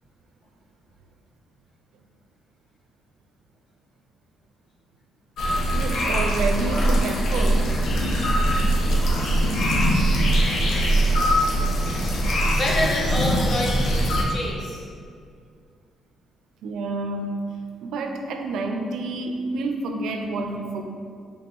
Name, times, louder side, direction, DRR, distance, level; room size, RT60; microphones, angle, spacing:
sound 1, 5.4-14.2, right 1 dB, 70° left, 0.7 m, -21 dB
voice 1, 5.7-7.7 16.6-17.5 17.8-20.8, right 3 dB, 80° right, 4 dB, 0.4 m, -28 dB
voice 2, 12.6-14.8, left 1 dB, 45° left, -2 dB, 0.9 m, -27 dB
5.1 x 3.3 x 2.9 m, 2.2 s
cardioid pair, 90°, 0 cm